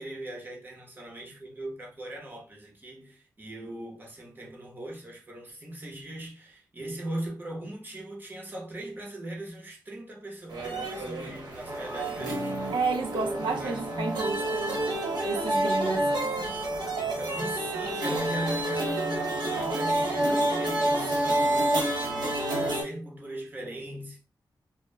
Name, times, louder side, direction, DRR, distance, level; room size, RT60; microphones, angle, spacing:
voice 1, 0.0-14.1 15.9-16.2 17.0-24.2, right 1 dB, 25° right, 0.8 m, -39 dB
sound 1, 10.5-22.8, right 1 dB, 65° right, 1.0 m, -29 dB
voice 2, 12.7-14.8 15.2-16.1, right 4 dB, 80° right, 0.4 m, -31 dB
2.1 x 2.1 x 3.2 m
wide cardioid pair, 125°, 8 cm